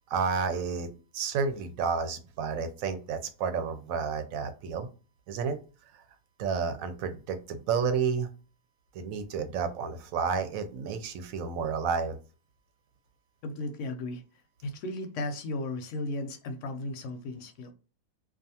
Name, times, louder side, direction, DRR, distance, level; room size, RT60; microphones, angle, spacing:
voice 1, 0.1-0.9 1.1-4.9 5.3-5.6 6.4-8.3 8.9-12.2, right 5 dB, 75° right, 1.0 m, -31 dB
voice 2, 13.4-14.2 14.6-17.7, left 2 dB, 70° left, 0.8 m, -35 dB
2.4 x 2.4 x 2.7 m
omnidirectional pair, 1.5 m